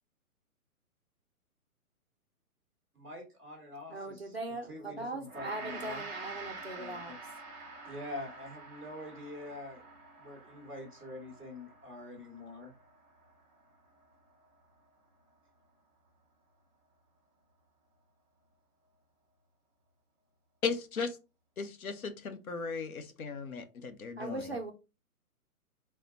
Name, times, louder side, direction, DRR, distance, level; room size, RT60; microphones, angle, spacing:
voice 1, 2.9-6.0 6.7-7.2 7.8-9.8 10.2-12.7, left 1 dB, ahead, 1.2 m, -45 dB
voice 2, 3.9-7.1 24.2-24.7, right 2 dB, 45° right, 0.4 m, -40 dB
Gong, 5.2-14.6, right 3 dB, 15° right, 1.0 m, -48 dB
voice 3, 20.6-21.2 21.6-24.6, left 5 dB, 70° left, 0.8 m, -36 dB
4.3 x 2.1 x 3.9 m
hypercardioid pair, 180°, 45 cm